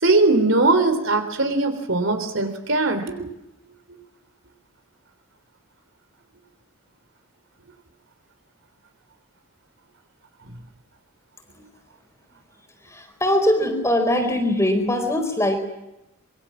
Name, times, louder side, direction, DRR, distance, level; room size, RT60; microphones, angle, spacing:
voice 1, 0.0-3.3, right 2 dB, 60° right, 8 dB, 3.7 m, -20 dB
voice 2, 12.8-15.6, left 1 dB, 15° left, 6 dB, 4.3 m, -21 dB
26.5 x 23.5 x 7.4 m, 0.90 s
head